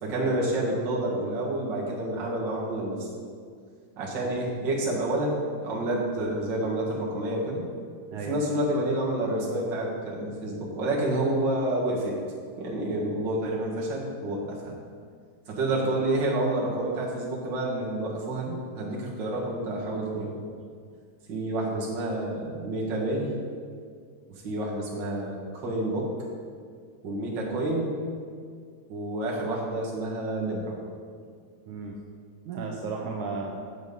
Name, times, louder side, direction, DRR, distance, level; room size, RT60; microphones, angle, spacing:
voice 1, 0.0-3.1 4.0-7.7 8.2-12.2 12.6-14.8 15.5-20.3 21.3-23.3 24.4-26.1 27.0-27.9 28.9-30.7, right 1 dB, 40° right, -4 dB, 2.1 m, -29 dB
voice 2, 32.5-33.5, right 4 dB, 75° right, -1 dB, 2.2 m, -34 dB
8.2 x 7.9 x 5.4 m, 2.1 s
omnidirectional pair, 3.7 m